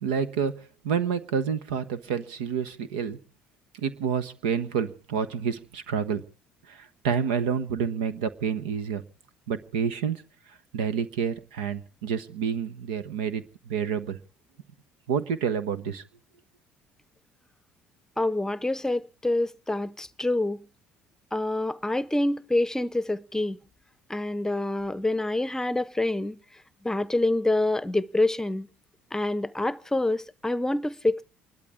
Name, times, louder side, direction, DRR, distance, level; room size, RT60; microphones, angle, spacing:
voice 1, 0.0-0.6 0.8-3.2 3.7-6.2 6.7-9.0 9.5-10.2 10.7-14.2 15.1-16.0, right 7 dB, 90° right, 1.1 m, -28 dB
voice 2, 18.2-20.6 21.3-23.6 24.1-26.4 26.8-28.7 29.1-31.2, left 2 dB, 10° left, 0.8 m, -26 dB
29.0 x 12.0 x 3.6 m
hypercardioid pair, 65°, 5 cm